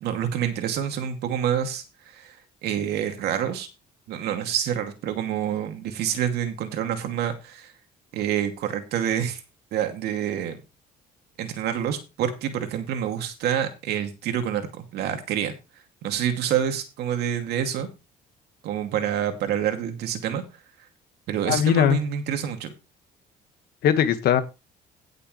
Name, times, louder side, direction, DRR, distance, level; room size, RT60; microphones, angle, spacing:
voice 1, 0.0-2.4 2.6-3.7 4.1-7.7 8.1-9.4 9.7-10.6 11.4-15.5 16.0-17.9 18.6-20.4 21.3-22.7, right 9 dB, 75° right, 2.5 m, -27 dB
voice 2, 21.5-22.0 23.8-24.4, left 9 dB, 70° left, 1.8 m, -19 dB
17.0 x 6.9 x 3.3 m
cardioid pair, 110°, 17 cm